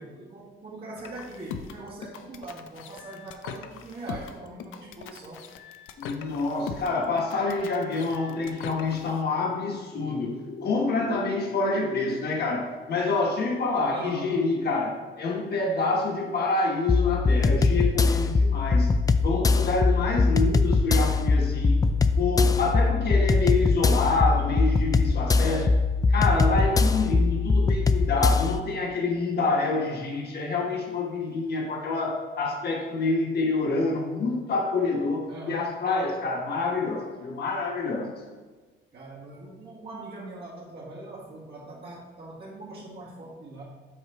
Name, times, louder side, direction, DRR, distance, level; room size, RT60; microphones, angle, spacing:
voice 1, 0.0-5.5 13.9-14.4 25.4-25.8 35.3-35.7 38.9-43.6, right 2 dB, 55° right, -8 dB, 1.7 m, -41 dB
sound 1, 1.0-9.2, left 7 dB, 85° left, 0.5 m, -41 dB
voice 2, 6.0-18.9 19.2-21.8 22.2-25.6 26.1-38.1, left 3 dB, 55° left, 0 dB, 1.2 m, -27 dB
sound 2, 16.9-28.6, left 3 dB, 20° left, 0.3 m, -22 dB
7.8 x 3.1 x 5.1 m, 1.3 s
cardioid pair, 90°, 20 cm